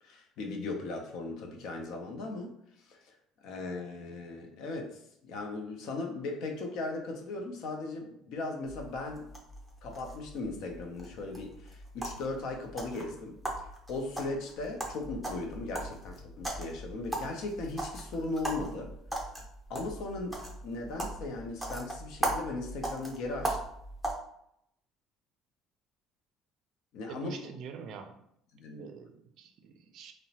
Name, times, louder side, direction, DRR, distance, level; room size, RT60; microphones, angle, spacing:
voice 1, 0.0-3.2 3.4-9.2 9.8-13.3 13.9-18.9 19.7-23.6 26.9-27.4 28.5-28.9, left 3 dB, 70° left, 3 dB, 0.5 m, -38 dB
sound 1, 8.6-24.1, right 1 dB, ahead, 0.6 m, -39 dB
voice 2, 27.1-28.2 28.8-30.1, right 6 dB, 60° right, 6 dB, 0.4 m, -45 dB
2.9 x 2.1 x 2.8 m, 0.73 s
cardioid pair, 125°, 0 cm